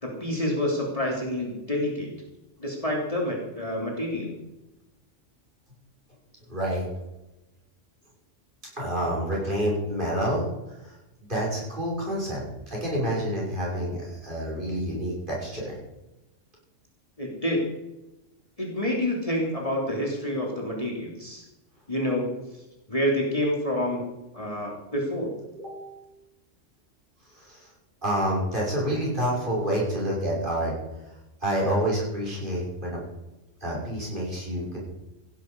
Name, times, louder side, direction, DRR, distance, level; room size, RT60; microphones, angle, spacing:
voice 1, 0.0-2.1 2.6-4.3 17.2-17.6 18.6-21.4 21.9-22.3 22.9-24.0 24.3-25.3, left 1 dB, 25° left, -1 dB, 3.3 m, -28 dB
voice 2, 6.5-6.8 8.8-10.4 10.8-11.0 11.3-15.8 25.5-26.0 27.4-27.7 28.0-30.7 31.4-33.0 33.6-34.8, equal, 40° right, -4 dB, 6.9 m, -28 dB
16.5 x 11.5 x 5.4 m, 0.97 s
omnidirectional pair, 1.3 m